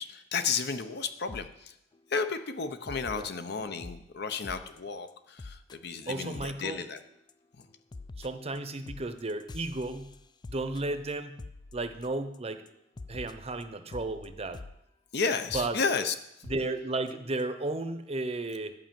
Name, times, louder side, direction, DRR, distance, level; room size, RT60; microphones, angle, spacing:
voice 1, 0.0-1.7 2.1-7.0 7.6-7.7 15.1-16.1, left 5 dB, 55° left, 9 dB, 0.8 m, -32 dB
sound 1, 1.3-1.5 1.9-2.2 2.9-4.0 4.4-4.8 5.1-5.2 5.4-5.8 6.0-6.1 6.3-6.7 7.0-7.3 7.6-12.4 12.7-12.8 13.0-14.8 15.5-15.9 16.4-16.7 17.1-17.2 17.4-17.5, left 3 dB, 20° left, 0.3 m, -46 dB
voice 2, 6.1-6.8 8.2-10.1 10.5-11.4 11.7-12.6 13.1-14.6 15.5-15.8 16.4-18.7, right 2 dB, 30° right, 9 dB, 0.7 m, -33 dB
11.5 x 5.4 x 7.6 m, 0.82 s
head